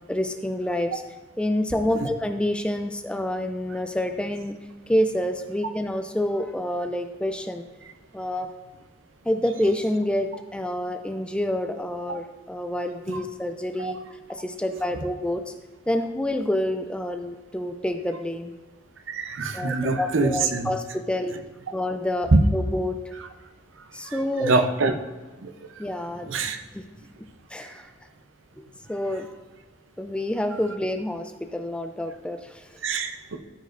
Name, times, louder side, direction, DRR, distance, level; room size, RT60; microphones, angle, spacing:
voice 1, 0.1-1.0 1.4-4.5 4.9-7.6 8.1-8.5 9.2-14.0 14.3-15.5 15.9-18.5 19.5-21.3 21.7-23.0 23.9-24.6 25.8-26.3 27.2-27.9 28.6-29.3 30.0-32.7, left 1 dB, 5° left, 7 dB, 0.4 m, -28 dB
voice 2, 19.1-20.7 22.3-22.4 24.1-24.9 25.4-25.5 26.3-26.6 32.8-33.4, right 3 dB, 85° right, 6 dB, 0.7 m, -24 dB
13.0 x 5.2 x 2.6 m, 1.2 s
head